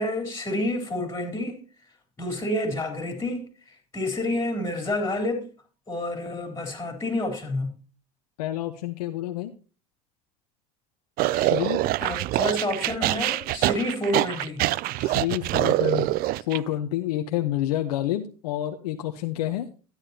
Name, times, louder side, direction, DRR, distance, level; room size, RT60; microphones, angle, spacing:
voice 1, 0.0-1.6 2.2-5.5 5.9-7.7 12.0-14.6, left 1 dB, 15° left, 3.5 m, -29 dB
voice 2, 8.4-9.5 11.3-11.8 15.0-16.1 16.5-19.7, left 13 dB, 85° left, 0.9 m, -28 dB
sound 1, 11.2-16.6, right 16 dB, 50° right, 0.4 m, -25 dB
13.0 x 9.7 x 2.8 m
hypercardioid pair, 85°, 19 cm